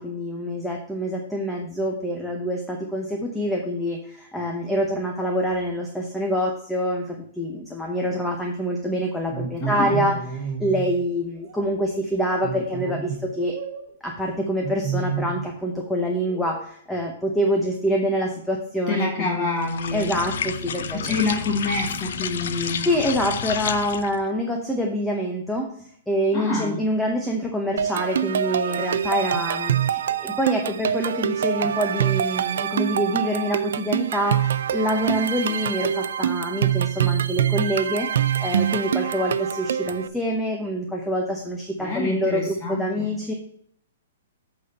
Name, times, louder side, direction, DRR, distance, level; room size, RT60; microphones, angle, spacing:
voice 1, 0.0-10.1 10.6-13.5 14.0-19.5 19.9-21.2 22.9-43.3, equal, ahead, 0 dB, 0.8 m, -26 dB
sound 1, 9.3-10.9 11.4-11.6 12.4-13.9 14.6-15.5 15.8-16.6, right 5 dB, 35° right, 1.2 m, -31 dB
voice 2, 9.6-10.1 18.9-20.2 20.9-22.9 26.3-26.8 41.8-43.1, left 3 dB, 25° left, 0 dB, 1.6 m, -27 dB
sound 2, 19.6-24.3, left 7 dB, 65° left, 0.7 m, -30 dB
sound 3, 27.8-40.1, right 9 dB, 70° right, 0.5 m, -25 dB
8.3 x 4.2 x 6.5 m, 0.67 s
hypercardioid pair, 165°, 0 cm